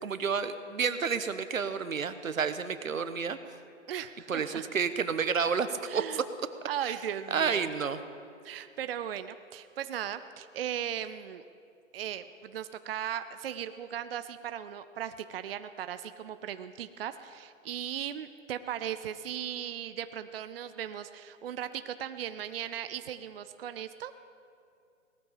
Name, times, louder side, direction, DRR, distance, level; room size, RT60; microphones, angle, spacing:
voice 1, 0.0-3.4 4.3-5.7 5.9-6.2 6.9-7.0 7.3-8.0, right 6 dB, 90° right, 11 dB, 1.2 m, -30 dB
voice 2, 3.9-4.6 5.9-6.2 6.7-7.7 8.4-11.4 11.9-24.1, right 10 dB, 45° right, 11 dB, 0.6 m, -37 dB
18.5 x 13.5 x 5.6 m, 2.5 s
hypercardioid pair, 145°, 39 cm